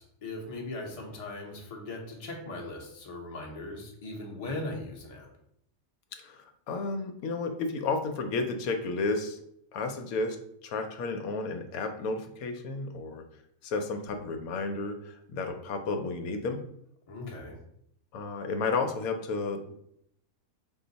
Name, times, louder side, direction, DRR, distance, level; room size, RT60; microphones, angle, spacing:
voice 1, 0.0-5.3 17.1-17.6, left 2 dB, 30° left, 0 dB, 0.8 m, -39 dB
voice 2, 6.1-9.4 9.7-10.4 10.6-13.2 13.6-16.6 18.1-19.8, left 3 dB, 80° left, 5 dB, 1.0 m, -32 dB
5.6 x 2.2 x 3.9 m, 0.73 s
omnidirectional pair, 1.5 m